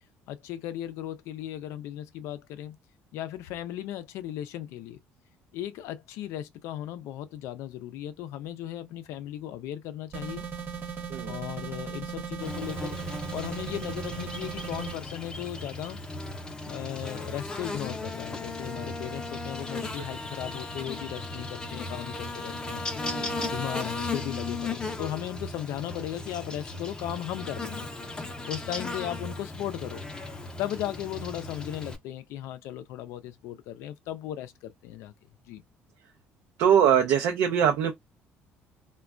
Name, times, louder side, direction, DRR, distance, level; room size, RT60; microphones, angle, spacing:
voice 1, 0.3-2.8 3.1-5.0 5.5-10.4 11.2-13.0 13.3-16.0 16.7-22.9 23.5-27.9 28.5-30.1 30.6-35.1 35.5-35.6, left 12 dB, 80° left, 0.4 m, -36 dB
sound 1, 10.1-15.0, right 6 dB, 50° right, 0.9 m, -37 dB
Buzz, 12.4-32.0, left 2 dB, 15° left, 0.6 m, -36 dB
voice 2, 23.1-23.5 36.6-37.9, right 8 dB, 80° right, 0.5 m, -22 dB
3.2 x 2.2 x 2.4 m
cardioid pair, 115°, 5 cm